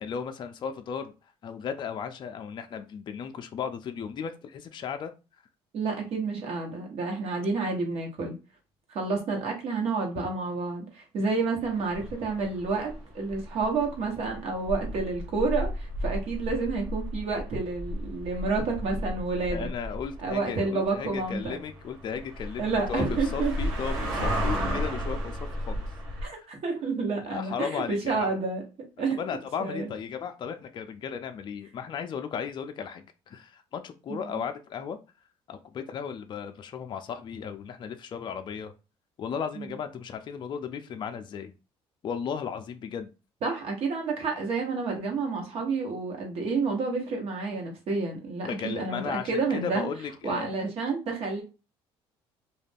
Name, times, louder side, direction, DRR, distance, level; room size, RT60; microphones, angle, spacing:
voice 1, 0.0-1.1 1.4-5.1 19.5-25.9 26.2-26.5 27.2-28.3 29.2-35.0 35.5-38.7 39.2-41.5 42.0-43.1 48.4-50.5, left 7 dB, 40° left, 8 dB, 0.4 m, -35 dB
voice 2, 5.7-8.3 8.9-19.7 20.2-21.6 22.6-23.5 24.2-24.8 26.2-28.6 29.0-29.2 29.6-29.9 34.1-34.4 39.6-39.7 43.4-49.0 49.3-49.8 50.2-51.4, right 4 dB, 60° right, 2 dB, 1.0 m, -30 dB
sound 1, 11.6-26.3, equal, 85° right, 0.9 m, -34 dB
2.4 x 2.1 x 3.3 m, 0.31 s
supercardioid pair, 85°, 12 cm